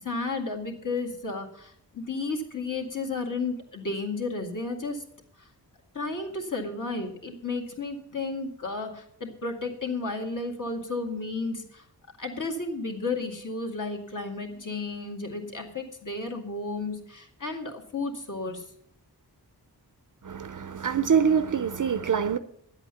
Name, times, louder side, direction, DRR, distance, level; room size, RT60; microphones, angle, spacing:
voice 1, 0.0-5.0 5.4-5.5 5.9-11.8 12.2-18.7, left 3 dB, 50° left, 2.1 m, -33 dB
voice 2, 20.2-22.4, right 7 dB, 50° right, 0.6 m, -25 dB
11.0 x 8.1 x 6.9 m
wide cardioid pair, 90°, 39 cm